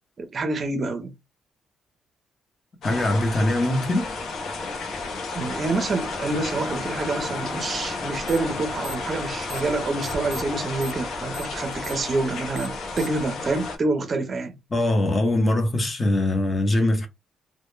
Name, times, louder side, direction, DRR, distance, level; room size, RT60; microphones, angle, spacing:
voice 1, 0.2-1.1 5.3-14.5, right 3 dB, 35° right, 0.5 m, -27 dB
sound 1, 2.8-13.8, left 3 dB, 65° left, 0.7 m, -32 dB
voice 2, 2.8-4.0 14.7-17.1, left 1 dB, 20° left, 0.7 m, -22 dB
sound 2, 8.3-8.5 8.8-9.7 10.0-13.3, equal, 15° right, 1.0 m, -39 dB
2.1 x 2.1 x 3.1 m
cardioid pair, 150°, 0 cm